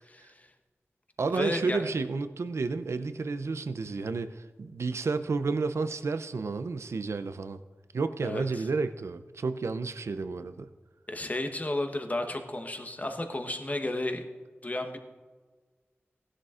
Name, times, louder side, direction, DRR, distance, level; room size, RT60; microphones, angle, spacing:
voice 1, 0.1-0.5 1.3-1.8 8.2-8.6 11.1-14.2 14.6-15.0, left 1 dB, 35° left, 6 dB, 1.0 m, -33 dB
voice 2, 1.2-7.6 7.9-10.7, right 4 dB, 90° right, 11 dB, 0.5 m, -31 dB
16.0 x 11.0 x 2.5 m, 1.4 s
wide cardioid pair, 70°, 5 cm